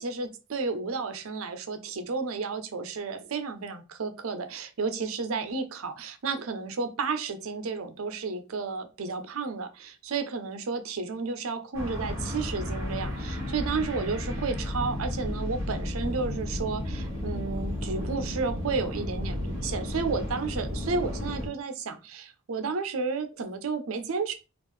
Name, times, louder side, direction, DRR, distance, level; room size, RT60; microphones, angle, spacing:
voice 1, 0.0-24.3, right 4 dB, 75° right, 9 dB, 0.6 m, -32 dB
sound 1, 11.7-21.5, left 1 dB, 15° right, 1.5 m, -33 dB
3.6 x 2.4 x 3.1 m, 0.30 s
head